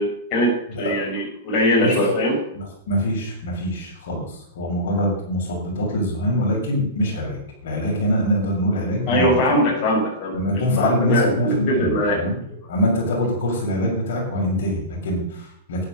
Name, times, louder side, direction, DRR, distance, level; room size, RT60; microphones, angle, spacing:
voice 1, 0.0-2.4 9.1-12.3, equal, 35° left, -3 dB, 7.0 m, -21 dB
voice 2, 2.5-9.4 10.3-12.4 12.7-15.8, equal, 70° left, -2 dB, 6.3 m, -24 dB
11.5 x 11.0 x 6.7 m, 0.71 s
hypercardioid pair, 140°, 0 cm